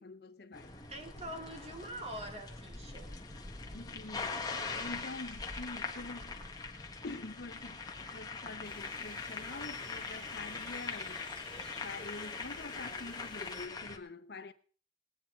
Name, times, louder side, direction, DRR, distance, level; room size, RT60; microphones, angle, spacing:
voice 1, 0.0-0.7 3.7-6.4 7.0-11.2 11.8-14.5, left 3 dB, 65° left, 0.9 m, -46 dB
sound 1, 0.5-14.0, left 4 dB, 25° left, 1.5 m, -42 dB
voice 2, 0.9-3.1, right 1 dB, 40° right, 2.2 m, -44 dB
sound 2, 8.6-13.7, left 2 dB, 5° left, 2.2 m, -53 dB
20.0 x 9.3 x 4.4 m
head